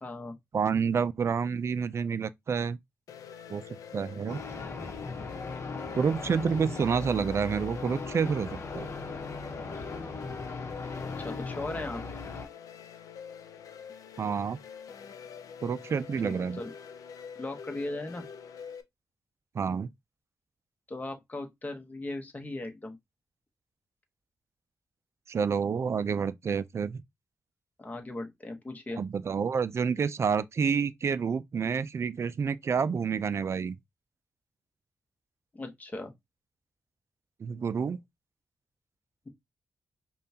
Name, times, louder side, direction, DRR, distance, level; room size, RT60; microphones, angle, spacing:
voice 1, 0.0-0.3 11.2-12.0 16.2-16.7 17.3-18.2 20.9-23.0 27.8-29.0 35.5-36.1, left 2 dB, 25° left, 1.0 m, -38 dB
voice 2, 0.5-2.8 3.5-4.4 5.9-8.9 14.2-14.6 15.6-16.6 19.5-19.9 25.3-27.0 29.0-33.8 37.4-38.0, right 6 dB, 50° right, 0.3 m, -29 dB
sound 1, 3.1-18.8, left 7 dB, 85° left, 0.5 m, -46 dB
sound 2, 4.3-12.5, left 4 dB, 55° left, 1.0 m, -38 dB
5.2 x 2.3 x 2.8 m
cardioid pair, 70°, 6 cm